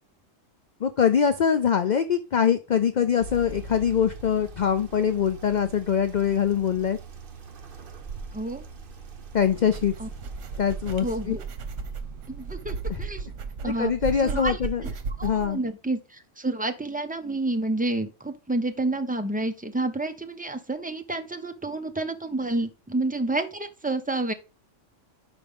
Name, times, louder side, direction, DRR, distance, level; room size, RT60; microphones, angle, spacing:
voice 1, 0.8-7.0 9.3-9.9 10.6-11.4 12.9-13.0 13.6-14.9 15.2-15.6, left 8 dB, 55° left, 9 dB, 0.5 m, -23 dB
sound 1, 3.2-12.5, right 4 dB, 50° right, 1.0 m, -42 dB
voice 2, 8.3-8.7 10.0-10.1 11.0-11.4 12.3-13.3 13.6-13.9 14.2-14.6 15.2-24.3, right 2 dB, 10° right, 6 dB, 0.4 m, -29 dB
sound 2, 9.4-15.5, right 4 dB, 75° right, 1.2 m, -35 dB
5.3 x 4.9 x 5.2 m, 0.29 s
omnidirectional pair, 1.3 m